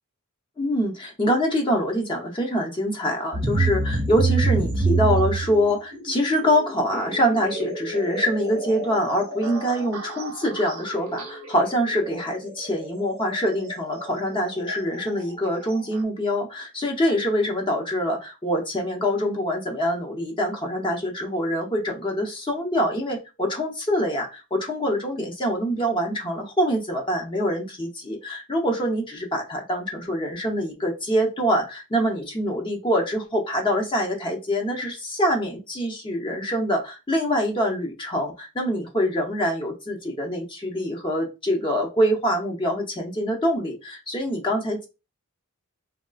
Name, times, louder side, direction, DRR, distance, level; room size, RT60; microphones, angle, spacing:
voice 1, 0.6-44.8, equal, 20° left, 0 dB, 0.7 m, -25 dB
sound 1, 3.3-16.0, right 3 dB, 70° right, 0.8 m, -29 dB
3.6 x 2.3 x 2.3 m, 0.28 s
head